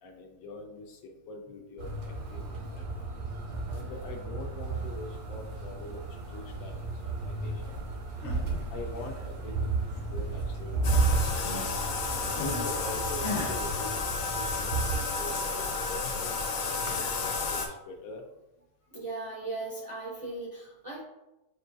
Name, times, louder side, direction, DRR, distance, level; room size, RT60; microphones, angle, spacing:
voice 1, 0.0-2.9 3.7-7.9 8.7-11.8 12.3-18.3, left 2 dB, 70° left, 2 dB, 1.0 m, -44 dB
sound 1, 1.8-15.0, right 3 dB, 80° right, 1.3 m, -33 dB
sound 2, 7.9-8.5 8.8-10.3 10.5-12.7 13.2-13.6, left 2 dB, 50° left, 1.1 m, -39 dB
Bathtub (filling or washing), 10.8-17.7, left 4 dB, 90° left, 1.2 m, -32 dB
voice 2, 18.9-21.0, right 3 dB, 45° right, -5 dB, 0.4 m, -37 dB
6.5 x 2.3 x 2.5 m, 0.97 s
omnidirectional pair, 1.7 m